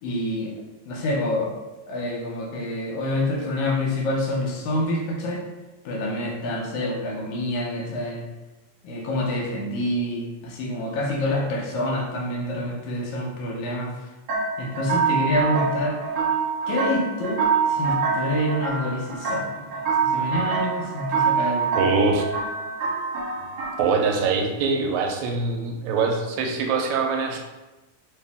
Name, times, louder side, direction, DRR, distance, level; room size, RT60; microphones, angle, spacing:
voice 1, 0.0-0.5 0.9-1.6 1.9-5.4 5.9-8.2 8.8-14.1 14.6-16.0 16.7-21.8, left 1 dB, 80° left, -1 dB, 2.1 m, -27 dB
sound 1, 14.3-24.2, right 5 dB, 60° right, 1.9 m, -25 dB
voice 2, 21.8-22.2 23.8-27.4, right 4 dB, 85° right, 2 dB, 2.0 m, -23 dB
4.4 x 2.8 x 3.4 m, 1.1 s
omnidirectional pair, 3.3 m